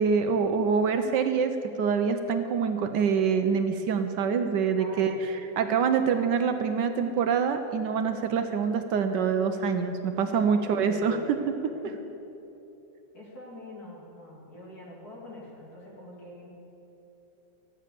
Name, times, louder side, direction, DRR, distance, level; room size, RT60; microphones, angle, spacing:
voice 1, 0.0-1.5 1.8-5.1 5.6-11.4, right 6 dB, 70° right, 7 dB, 1.2 m, -25 dB
voice 2, 4.8-5.2 10.2-11.5 11.8-11.9 13.1-16.5, left 1 dB, 45° left, -5 dB, 2.9 m, -45 dB
13.5 x 8.8 x 6.7 m, 3.0 s
omnidirectional pair, 2.2 m